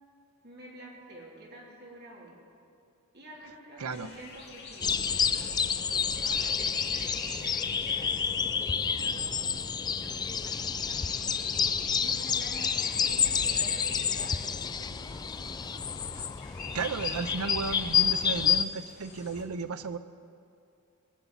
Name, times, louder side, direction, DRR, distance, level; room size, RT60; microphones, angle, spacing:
voice 1, 0.4-2.4 3.1-5.0 5.7-7.6 7.8-9.3 9.9-15.7, right 1 dB, 50° right, -3 dB, 3.2 m, -49 dB
sound 1, 3.9-19.4, left 3 dB, 50° left, 2.4 m, -44 dB
sound 2, 4.8-18.6, left 7 dB, 20° left, 0.3 m, -29 dB
voice 2, 16.7-20.0, right 4 dB, 90° right, 12 dB, 0.7 m, -34 dB
19.5 x 7.1 x 8.8 m, 2.5 s
head